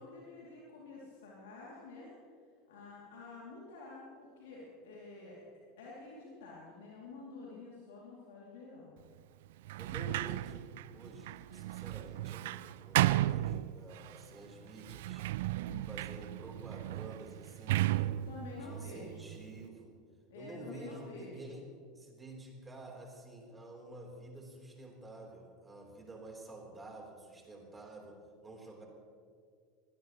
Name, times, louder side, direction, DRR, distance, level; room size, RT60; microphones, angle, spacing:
voice 1, 0.0-2.1 2.7-5.4 5.8-8.9 9.9-10.2 15.6-15.9 18.3-19.3 20.3-21.6, left 3 dB, 65° left, -4 dB, 2.8 m, -49 dB
Sliding door, 9.6-14.2 14.8-19.6, right 15 dB, 60° right, 0.3 m, -34 dB
voice 2, 9.8-15.3 15.9-18.2 18.6-20.0 20.3-21.6 22.0-28.2 28.4-28.9, right 2 dB, 15° right, 0 dB, 3.8 m, -50 dB
23.5 x 17.0 x 3.1 m, 2.1 s
figure-of-eight pair, 80°, 0 cm